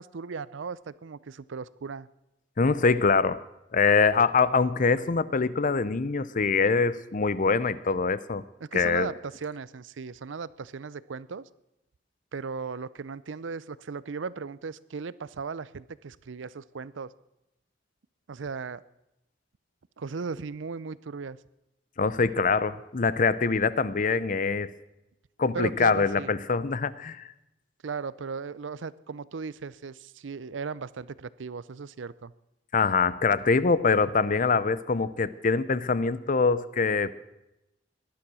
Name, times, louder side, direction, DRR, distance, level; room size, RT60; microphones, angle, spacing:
voice 1, 0.0-2.1 8.6-11.5 12.3-17.1 18.3-18.8 20.0-21.4 25.5-26.3 27.8-32.3, right 5 dB, 90° right, 19 dB, 0.5 m, -37 dB
voice 2, 2.6-3.4 3.7-8.4 8.7-9.1 22.0-24.7 25.4-27.2 32.7-37.1, left 4 dB, 45° left, 17 dB, 0.7 m, -24 dB
18.5 x 11.5 x 6.2 m, 0.90 s
head